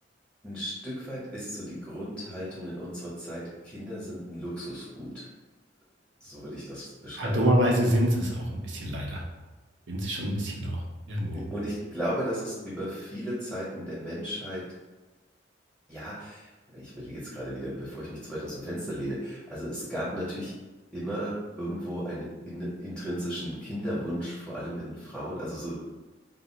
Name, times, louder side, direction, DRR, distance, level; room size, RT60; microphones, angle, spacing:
voice 1, 0.4-5.3 6.2-7.4 11.3-14.6 15.9-20.5 20.9-25.8, equal, ahead, -9 dB, 0.9 m, -35 dB
voice 2, 7.2-9.2 9.9-10.8 11.1-11.4, equal, 75° right, -1 dB, 0.7 m, -26 dB
2.4 x 2.0 x 3.9 m, 1.2 s
head